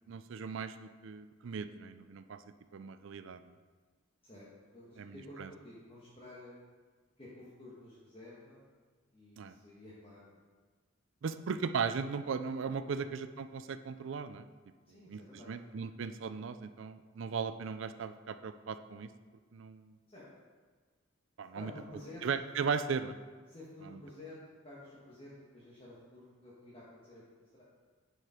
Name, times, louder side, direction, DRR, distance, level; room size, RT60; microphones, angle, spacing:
voice 1, 0.1-2.4 2.7-3.6 5.0-5.5 9.4-9.6 11.2-14.5 15.0-15.2 15.5-19.1 19.5-20.0 21.4-21.7 22.2-23.2 23.9-24.0, right 5 dB, 65° right, 11 dB, 0.4 m, -37 dB
voice 2, 4.7-6.6 7.2-8.6 9.1-10.4 11.2-11.3 12.9-13.1 14.9-15.5 20.1-20.3 21.5-22.3 23.5-27.6, left 1 dB, 25° left, -7 dB, 1.3 m, -52 dB
9.7 x 5.0 x 4.3 m, 1.5 s
head